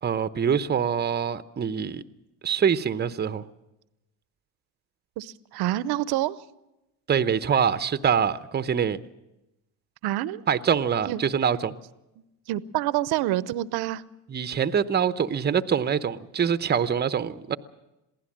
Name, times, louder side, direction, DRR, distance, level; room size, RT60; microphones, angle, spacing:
voice 1, 0.0-2.0 2.4-3.4 7.1-9.0 10.5-11.7 14.3-17.6, right 7 dB, 25° right, 13 dB, 0.8 m, -24 dB
voice 2, 5.2-6.4 10.0-10.4 11.1-11.2 12.5-14.0, right 14 dB, 65° right, 18 dB, 0.9 m, -27 dB
22.5 x 16.0 x 7.5 m, 0.97 s
supercardioid pair, 85°, 42 cm